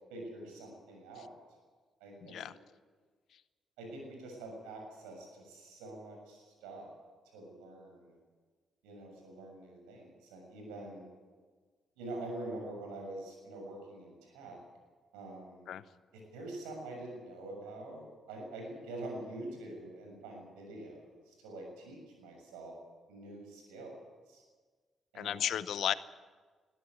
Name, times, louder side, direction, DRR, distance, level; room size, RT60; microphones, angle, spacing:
voice 1, 0.1-1.3 2.0-2.5 3.8-6.9 7.3-8.1 8.8-11.0 12.0-14.6 15.1-15.7 16.1-22.7 23.1-24.0 24.3-24.4 25.1-25.5, right 2 dB, 85° right, 2 dB, 6.7 m, -45 dB
voice 2, 2.2-2.5 15.7-15.8 25.1-25.9, left 10 dB, 65° left, 16 dB, 0.8 m, -33 dB
21.5 x 13.5 x 9.6 m, 1.5 s
hypercardioid pair, 45°, 0 cm